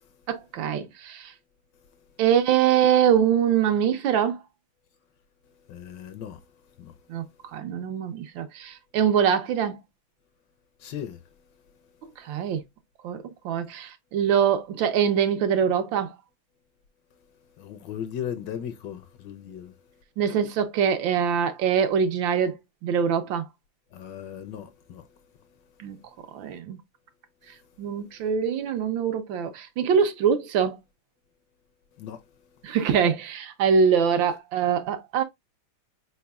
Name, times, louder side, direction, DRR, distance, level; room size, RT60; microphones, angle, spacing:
voice 1, 0.3-1.3 2.2-4.4 7.1-7.2 7.5-9.8 12.2-12.6 13.0-16.1 20.2-22.6 22.8-23.4 25.8-26.0 26.3-26.8 27.8-30.8 32.6-35.2, right 7 dB, 75° right, 1.3 m, -23 dB
voice 2, 5.7-6.4 6.8-6.9 10.8-11.2 17.6-19.7 23.9-25.1 32.0-32.2, left 9 dB, 70° left, 1.1 m, -37 dB
4.5 x 4.0 x 2.2 m
omnidirectional pair, 2.2 m